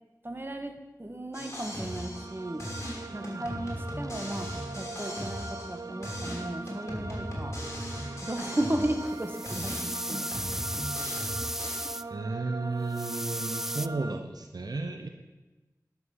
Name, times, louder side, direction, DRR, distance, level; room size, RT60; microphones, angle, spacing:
voice 1, 0.2-0.7 1.0-2.7 3.1-7.5 8.2-10.3, right 1 dB, 35° right, 5 dB, 1.4 m, -35 dB
sound 1, 1.3-2.3 2.6-5.8 6.0-9.2 9.5-11.8, equal, 45° left, 3.1 m, -38 dB
sound 2, 1.3-14.2, right 3 dB, 60° right, 0.7 m, -42 dB
voice 2, 3.1-3.5 12.1-15.1, right 3 dB, 90° right, 5 dB, 0.8 m, -34 dB
sound 3, 9.1-12.0 12.9-13.9, equal, 5° right, 0.3 m, -35 dB
11.0 x 5.9 x 7.2 m, 1.1 s
wide cardioid pair, 50°, 7 cm